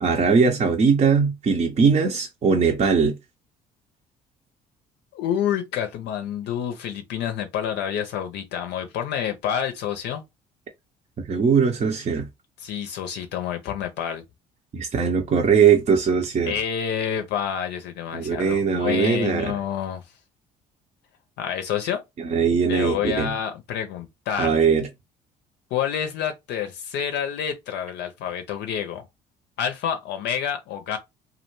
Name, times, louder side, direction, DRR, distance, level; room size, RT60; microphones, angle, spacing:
voice 1, 0.0-3.2 11.2-12.3 14.7-16.5 18.1-19.5 22.2-23.3 24.4-24.9, right 6 dB, 35° right, 0.7 m, -20 dB
voice 2, 5.1-10.2 12.6-14.2 16.4-20.0 21.4-22.0 22.7-24.6 25.7-29.0 29.6-31.0, left 9 dB, 60° left, 0.6 m, -28 dB
2.3 x 2.1 x 3.0 m
figure-of-eight pair, 50°, 20 cm